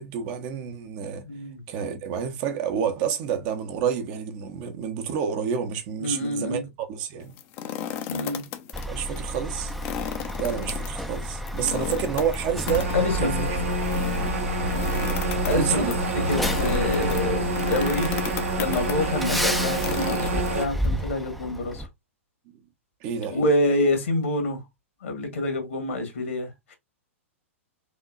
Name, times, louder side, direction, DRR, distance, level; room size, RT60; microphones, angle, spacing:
voice 1, 0.0-1.2 1.7-7.4 8.9-9.7 10.4-12.9 13.2-13.6 15.5-16.0 23.0-23.4, right 8 dB, 40° right, 1.0 m, -29 dB
voice 2, 1.3-1.7 6.0-6.7 8.1-8.4 12.9-13.4 15.5-18.1 18.6-21.9 23.3-24.6 25.0-26.7, left 1 dB, 65° left, 1.8 m, -27 dB
sound 1, 7.2-8.8 9.2-9.3 9.7-20.9, left 10 dB, 35° left, 0.7 m, -35 dB
Truck, 8.7-21.9, equal, ahead, 0.6 m, -32 dB
sound 2, 12.7-20.6, right 2 dB, 70° right, 1.5 m, -27 dB
5.0 x 2.9 x 2.5 m
figure-of-eight pair, 105°, 7 cm